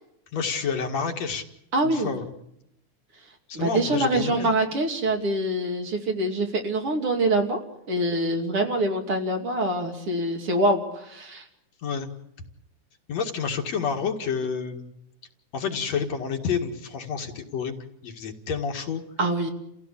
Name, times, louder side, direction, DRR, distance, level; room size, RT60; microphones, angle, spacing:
voice 1, 0.3-1.4 1.8-2.3 3.5-4.6 11.8-12.1 13.1-14.9 15.5-19.0, left 6 dB, 60° left, 4 dB, 3.0 m, -29 dB
voice 2, 1.7-2.1 3.5-7.6 7.9-11.4 19.2-19.5, right 1 dB, 50° right, 3 dB, 3.3 m, -25 dB
30.0 x 16.0 x 8.6 m, 0.81 s
omnidirectional pair, 3.5 m